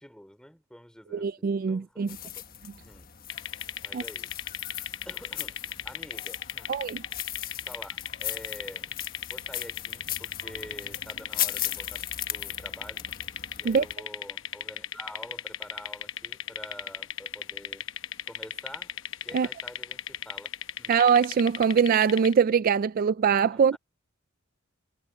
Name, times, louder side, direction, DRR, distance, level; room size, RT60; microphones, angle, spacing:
voice 1, 0.0-2.4 2.8-3.1 3.8-4.3 5.1-6.8 7.6-8.9 9.3-13.1 13.6-17.9 18.3-18.9 19.2-20.5 20.8-21.0 23.5-23.8, equal, 5° left, 3.6 m, -47 dB
voice 2, 1.1-2.1 3.9-4.0 6.7-7.0 13.7-13.8 19.3-19.5 20.9-23.8, right 6 dB, 45° right, 0.3 m, -22 dB
sound 1, 2.1-13.9, left 11 dB, 45° left, 1.4 m, -37 dB
sound 2, 3.3-22.3, left 10 dB, 65° left, 1.0 m, -37 dB
head